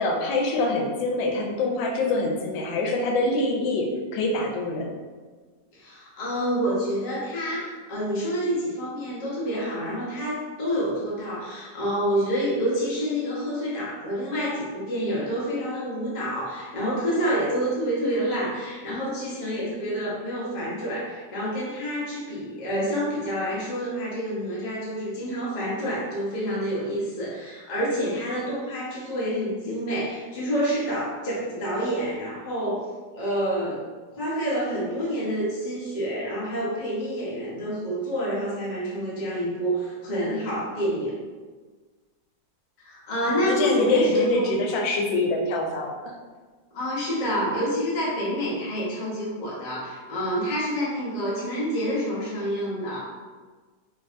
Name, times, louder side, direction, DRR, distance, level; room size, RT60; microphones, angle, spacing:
voice 1, 0.0-3.9 4.1-4.9 43.3-46.1, left 2 dB, 85° left, 1 dB, 1.3 m, -25 dB
voice 2, 5.7-32.8 33.1-33.8 34.1-41.2 42.8-44.5 46.7-53.0, equal, 60° left, -7 dB, 0.4 m, -28 dB
3.2 x 2.6 x 2.4 m, 1.4 s
omnidirectional pair, 2.0 m